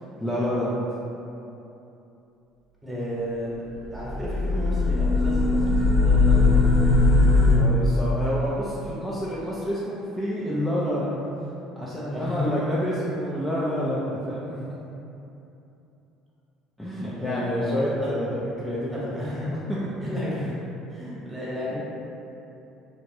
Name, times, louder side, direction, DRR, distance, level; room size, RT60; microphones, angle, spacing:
voice 1, 0.2-0.8 7.5-11.2 11.7-14.6 16.8-19.0, equal, 10° left, -8 dB, 0.5 m, -28 dB
voice 2, 2.8-3.6 3.9-6.8 12.1-12.6 17.2-18.1 18.9-19.5 20.0-20.6 20.9-21.8, left 1 dB, 15° right, -8 dB, 1.2 m, -32 dB
sound 1, 3.9-7.5, left 3 dB, 30° left, 1.0 m, -19 dB
2.9 x 2.5 x 2.6 m, 2.9 s
supercardioid pair, 80°, 0 cm